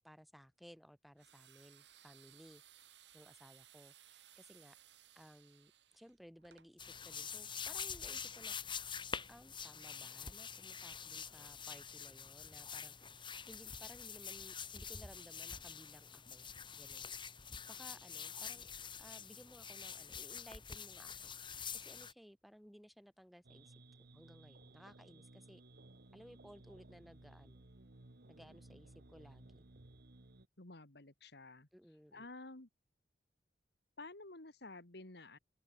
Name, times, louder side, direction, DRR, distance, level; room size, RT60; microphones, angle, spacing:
voice 1, 0.0-2.6 3.1-4.8 5.1-8.8 9.3-18.7 19.0-23.7 24.0-25.6 26.1-27.7 28.3-29.6 31.7-32.3, equal, ahead, 4.9 m, -59 dB
sound 1, 1.2-6.7, right 11 dB, 80° right, 5.8 m, -63 dB
sound 2, 6.8-22.1, left 6 dB, 30° left, 2.7 m, -46 dB
sound 3, 23.4-30.5, right 2 dB, 60° right, 1.4 m, -59 dB
voice 2, 30.6-31.7 32.1-32.7 34.0-35.4, left 2 dB, 65° left, 2.6 m, -52 dB
open air
head